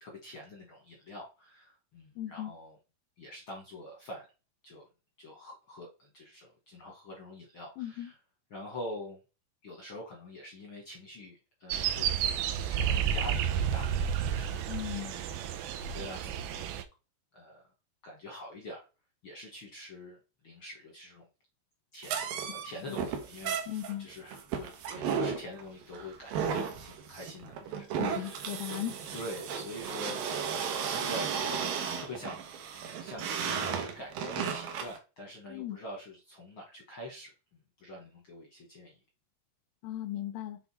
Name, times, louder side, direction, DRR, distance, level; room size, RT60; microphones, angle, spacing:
voice 1, 0.0-2.8 3.2-4.3 4.6-4.8 5.2-8.2 8.5-9.2 9.6-14.0 14.3-14.7 15.0-16.8 17.3-17.6 18.0-18.8 19.2-21.2 21.9-22.2 22.5-23.6 24.0-28.6 29.1-32.4 33.0-39.0, left 1 dB, 55° left, 1.5 m, -45 dB
voice 2, 2.2-2.5 7.8-8.1 14.7-15.1 22.9-23.0 23.7-24.1 27.9-29.0 35.5-35.8 39.8-40.6, left 13 dB, 90° left, 2.6 m, -37 dB
sound 1, 11.7-16.8, right 8 dB, 90° right, 2.6 m, -31 dB
sound 2, 22.0-35.0, right 7 dB, 70° right, 2.7 m, -34 dB
6.8 x 4.1 x 4.2 m
omnidirectional pair, 4.3 m